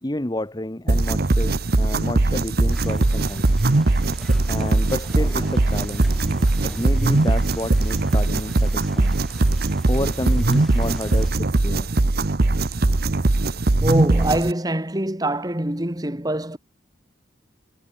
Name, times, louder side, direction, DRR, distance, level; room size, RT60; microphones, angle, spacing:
voice 1, 0.0-3.5 4.5-6.1 6.6-9.2 9.9-11.9, left 1 dB, 20° left, 1.1 m, -30 dB
sound 1, 0.9-14.5, right 2 dB, 55° right, 0.9 m, -20 dB
sound 2, 2.7-11.3, equal, ahead, 8.0 m, -39 dB
voice 2, 13.8-16.6, right 1 dB, 20° right, 1.9 m, -24 dB
head